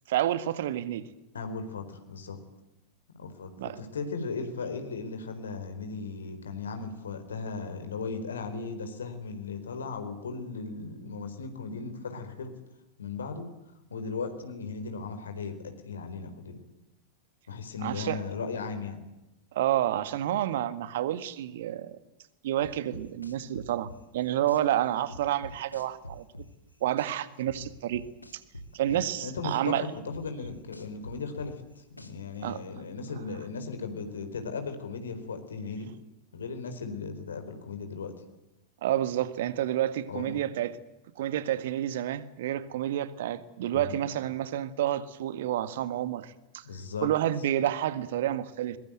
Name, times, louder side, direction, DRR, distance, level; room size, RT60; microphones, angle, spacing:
voice 1, 0.1-1.1 3.6-3.8 17.8-18.2 19.5-22.0 22.4-26.2 26.8-28.0 28.7-29.8 32.4-32.6 38.8-40.8 41.2-46.6 47.0-48.8, right 12 dB, 55° right, 14 dB, 1.7 m, -29 dB
voice 2, 1.3-2.4 3.2-3.5 3.8-12.5 13.0-13.5 13.9-16.6 17.5-19.1 28.9-31.6 31.9-35.9 36.3-38.1 40.1-40.4 43.7-43.9 46.6-47.1, left 4 dB, 70° left, 7 dB, 4.3 m, -37 dB
sound 1, 22.6-24.6 25.1-27.1 27.4-29.6 30.1-32.4, left 1 dB, 85° left, 2.4 m, -45 dB
22.5 x 22.5 x 9.1 m, 0.95 s
figure-of-eight pair, 90°, 0 cm